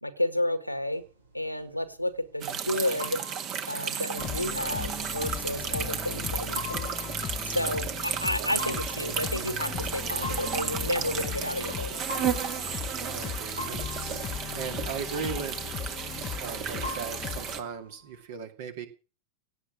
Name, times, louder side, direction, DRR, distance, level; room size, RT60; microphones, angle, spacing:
voice 1, 0.0-1.0 1.3-3.2 3.7-6.9 7.4-12.0, left 1 dB, 90° left, 12 dB, 1.6 m, -31 dB
sound 1, 0.9-18.2, left 1 dB, 75° right, 3.0 m, -44 dB
sound 2, 2.4-17.6, right 8 dB, 35° right, 1.7 m, -33 dB
sound 3, 4.2-17.6, left 10 dB, 30° left, 0.7 m, -38 dB
voice 2, 13.1-14.3 14.5-15.6 16.4-18.9, right 6 dB, 55° right, 7 dB, 2.4 m, -38 dB
17.0 x 8.9 x 6.3 m, 0.36 s
figure-of-eight pair, 90°, 0 cm